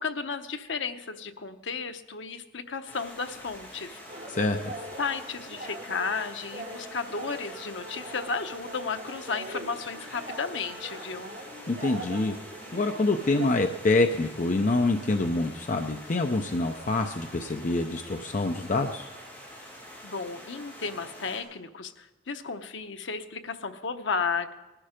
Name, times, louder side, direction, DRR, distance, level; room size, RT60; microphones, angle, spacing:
voice 1, 0.0-4.0 5.0-11.3 20.0-24.5, left 5 dB, 85° left, 7 dB, 0.9 m, -33 dB
Stream, 2.8-21.4, equal, 10° left, 5.3 m, -46 dB
sound 1, 4.1-13.5, right 1 dB, 55° right, 4.4 m, -42 dB
voice 2, 4.3-4.7 11.7-12.4 12.7-19.1, left 2 dB, 40° left, 5 dB, 0.6 m, -26 dB
19.5 x 12.0 x 5.1 m, 1.1 s
head